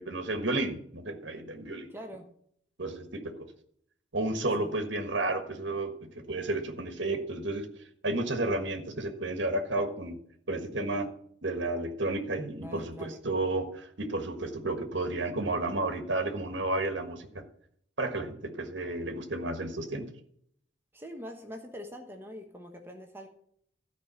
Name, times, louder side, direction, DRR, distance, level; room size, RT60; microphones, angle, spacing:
voice 1, 0.0-1.9 2.8-3.3 4.1-7.7 8.0-10.2 10.5-11.1 11.4-17.4 18.0-20.1, right 2 dB, 70° right, 6 dB, 1.5 m, -32 dB
voice 2, 1.9-2.3 4.6-4.7 12.6-13.3 20.9-23.3, equal, 10° right, 3 dB, 1.0 m, -44 dB
13.0 x 5.1 x 6.9 m, 0.66 s
head